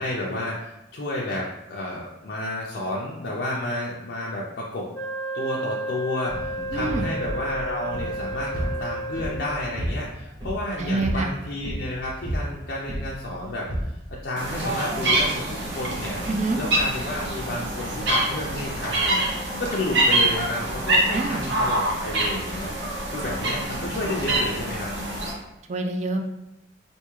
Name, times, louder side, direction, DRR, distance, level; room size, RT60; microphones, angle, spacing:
voice 1, 0.0-4.9 5.3-13.7 14.1-16.2 16.6-19.2 19.6-24.9, left 1 dB, 65° left, -4 dB, 0.5 m, -31 dB
Wind instrument woodwind instrument, 4.9-9.7, right 1 dB, 5° left, 0.8 m, -32 dB
sound 1, 6.3-14.9, equal, 25° right, 0.9 m, -33 dB
voice 2, 6.7-7.1 10.8-11.3 16.3-16.6 21.1-21.4 25.7-26.2, right 2 dB, 40° right, 5 dB, 0.4 m, -26 dB
sound 2, 14.4-25.3, right 1 dB, 75° right, 0.8 m, -25 dB
3.4 x 2.6 x 3.0 m, 0.89 s
head